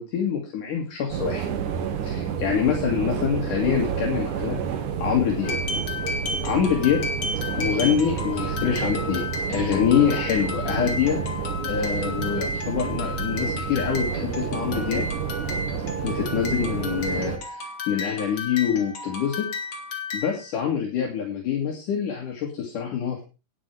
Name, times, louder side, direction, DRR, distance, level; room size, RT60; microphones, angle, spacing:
voice 1, 0.0-1.4 2.0-4.6 5.0-5.5 6.4-7.0 7.6-11.2 11.7-15.1 16.0-19.5 20.1-23.2, left 8 dB, 70° left, 0 dB, 3.6 m, -25 dB
sound 1, 1.1-17.4, right 7 dB, 70° right, 2.9 m, -30 dB
sound 2, 5.4-20.5, left 3 dB, 50° left, 3.0 m, -33 dB
10.0 x 9.7 x 4.8 m, 0.30 s
omnidirectional pair, 3.7 m